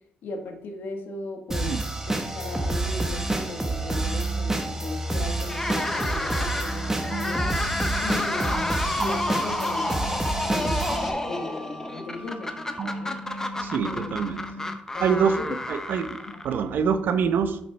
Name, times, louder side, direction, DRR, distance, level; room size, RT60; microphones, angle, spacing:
voice 1, 0.2-1.7 2.1-7.5 8.0-10.2 10.4-13.2 13.8-14.2 14.9-15.6 16.2-16.4, left 3 dB, 75° left, 4 dB, 1.5 m, -37 dB
sound 1, 1.5-11.1, right 2 dB, 15° right, 1.3 m, -28 dB
sound 2, 5.4-16.7, left 1 dB, 15° left, 0.9 m, -30 dB
sound 3, 7.1-14.7, right 1 dB, 40° right, 2.0 m, -37 dB
voice 2, 13.6-14.5 15.0-16.2 16.4-17.6, right 6 dB, 70° right, 10 dB, 0.8 m, -25 dB
8.1 x 7.2 x 3.4 m, 0.72 s
cardioid pair, 80°, 3 cm